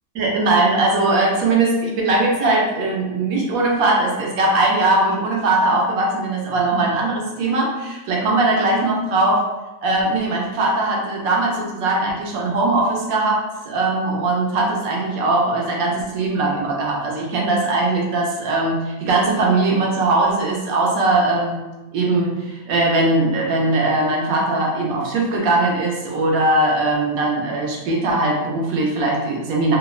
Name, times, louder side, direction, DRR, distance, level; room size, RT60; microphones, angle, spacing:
voice 1, 0.2-9.4 9.8-21.6 21.9-29.8, right 2 dB, 70° right, -2 dB, 1.0 m, -20 dB
2.8 x 2.1 x 2.3 m, 1.1 s
omnidirectional pair, 1.6 m